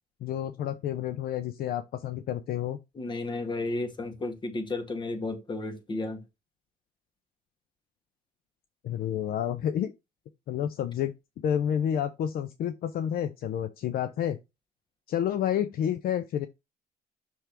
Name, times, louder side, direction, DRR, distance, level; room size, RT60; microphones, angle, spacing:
voice 1, 0.2-2.8 8.8-9.9 10.5-14.4 15.1-16.5, left 10 dB, 60° left, 0.6 m, -30 dB
voice 2, 2.9-6.2, left 2 dB, 30° left, 1.8 m, -33 dB
6.2 x 3.4 x 5.9 m
cardioid pair, 110°, 17 cm